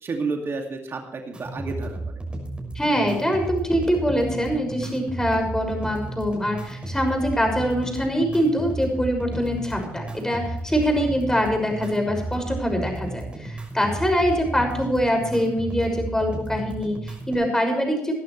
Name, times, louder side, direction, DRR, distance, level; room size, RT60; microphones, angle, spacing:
voice 1, 0.0-2.2, right 4 dB, 45° right, 3 dB, 2.3 m, -31 dB
sound 1, 1.3-17.3, right 2 dB, 20° right, 6.2 m, -33 dB
voice 2, 2.7-18.1, equal, 10° left, 3 dB, 6.2 m, -24 dB
20.5 x 11.5 x 3.2 m, 0.77 s
supercardioid pair, 60°, 5 cm